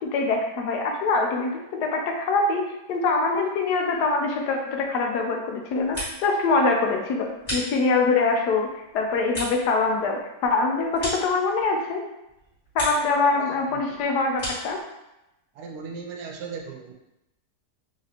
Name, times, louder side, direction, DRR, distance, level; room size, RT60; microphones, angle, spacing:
voice 1, 0.0-12.0 12.7-14.8, left 3 dB, 80° left, 2 dB, 1.2 m, -24 dB
sound 1, 5.6-6.4 6.7-8.2 8.6-11.9 12.2-13.2 13.5-14.8, equal, 30° left, 1.7 m, -36 dB
voice 2, 15.5-16.9, right 5 dB, 85° right, 2 dB, 1.2 m, -37 dB
4.2 x 3.0 x 2.8 m, 0.90 s
omnidirectional pair, 1.8 m